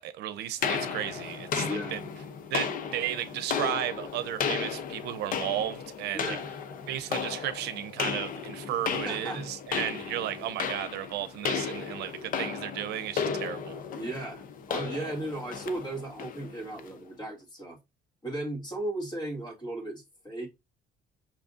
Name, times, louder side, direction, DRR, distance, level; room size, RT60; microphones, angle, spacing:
voice 1, 0.0-2.0 2.5-6.4 6.9-13.8, right 12 dB, 80° right, 0.6 m, -34 dB
sound 1, 0.6-17.0, left 6 dB, 55° left, 0.7 m, -34 dB
voice 2, 1.7-2.1 6.1-6.5 8.9-9.5 13.9-17.8 18.2-20.5, right 1 dB, 25° left, 2.5 m, -36 dB
6.0 x 3.5 x 2.5 m
cardioid pair, 110°, 17 cm